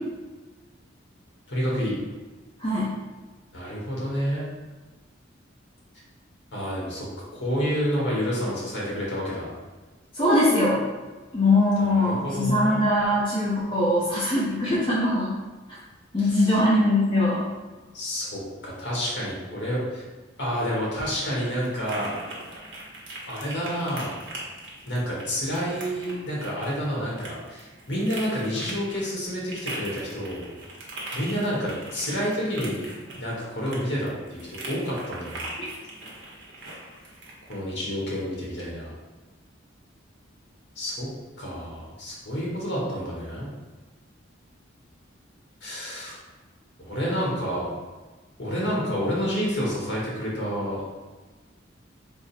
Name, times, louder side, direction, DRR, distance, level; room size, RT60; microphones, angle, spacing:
voice 1, 1.5-2.0 3.5-4.5 6.5-9.5 11.9-12.8 16.2-16.5 17.9-20.0 20.4-22.2 23.3-24.1 24.9-30.5 31.1-32.9 33.2-35.5 37.5-38.9 40.7-41.1 41.4-43.5 45.6-46.2 46.8-47.7 48.4-50.8, equal, 60° left, -5 dB, 1.3 m, -29 dB
voice 2, 2.6-3.0 10.1-10.9 11.3-15.3 16.1-17.5, left 1 dB, 25° left, -9 dB, 0.6 m, -22 dB
sound 1, 21.6-37.6, right 1 dB, 65° right, 0.8 m, -41 dB
3.5 x 2.0 x 4.1 m, 1.3 s
head